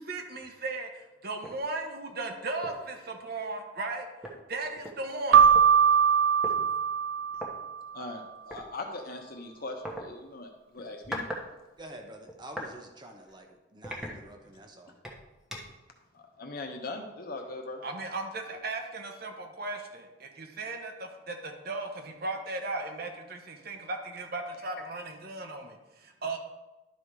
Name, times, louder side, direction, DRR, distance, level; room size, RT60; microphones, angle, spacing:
voice 1, 0.0-4.1 4.5-5.5 17.8-26.4, right 2 dB, 55° right, 4 dB, 1.1 m, -36 dB
sound 1, 1.4-1.6 2.1-2.2 2.6-2.9 3.9-4.0 4.2-5.6 6.4-6.6 7.3-7.5 8.5-8.7 9.8-10.0 10.8-11.5 11.8-12.7 13.2-13.3 13.8-14.6 15.0-15.8, equal, 5° right, 1.1 m, -40 dB
Keyboard (musical), 5.3-7.9, right 7 dB, 80° right, 0.3 m, -21 dB
voice 2, 7.9-11.2 16.1-17.8, left 2 dB, 50° left, 3 dB, 1.1 m, -40 dB
voice 3, 11.8-14.9, right 1 dB, 25° right, 3 dB, 1.0 m, -48 dB
11.5 x 4.2 x 4.8 m, 1.1 s
head